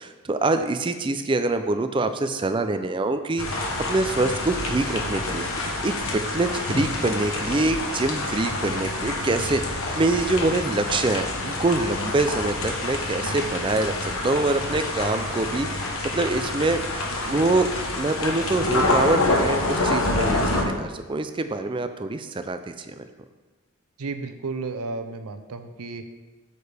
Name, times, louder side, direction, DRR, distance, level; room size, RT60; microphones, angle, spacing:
voice 1, 0.0-3.6 3.9-5.5 5.8-9.6 10.0-16.8 17.3-17.7 18.0-23.1, right 2 dB, 20° right, 9 dB, 0.4 m, -25 dB
sound 1, 3.4-20.6, left 2 dB, 65° left, 1.1 m, -27 dB
voice 2, 24.0-26.0, right 3 dB, 90° right, 9 dB, 0.6 m, -33 dB
8.5 x 6.7 x 3.4 m, 1.3 s
head